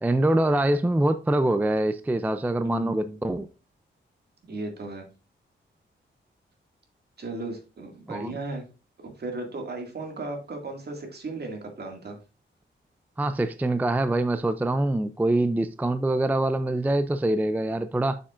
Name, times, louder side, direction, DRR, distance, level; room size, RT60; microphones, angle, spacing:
voice 1, 0.0-3.5 8.1-8.4 13.2-18.2, right 1 dB, 10° right, 0.3 m, -24 dB
voice 2, 2.6-3.2 4.5-5.1 7.2-8.6 9.0-12.2, right 2 dB, 55° right, 2.0 m, -36 dB
7.2 x 6.7 x 2.4 m
wide cardioid pair, 140°, 20 cm